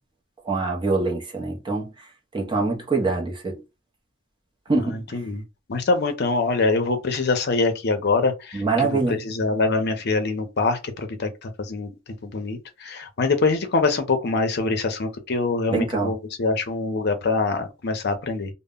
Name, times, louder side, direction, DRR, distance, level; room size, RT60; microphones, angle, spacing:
voice 1, 0.4-1.9 2.3-3.6 4.7-5.0 8.5-9.2 15.7-16.1, right 3 dB, 25° right, 0.6 m, -24 dB
voice 2, 4.9-5.4 5.7-11.9 12.2-18.5, left 3 dB, 55° left, 0.6 m, -24 dB
2.1 x 2.0 x 3.5 m
head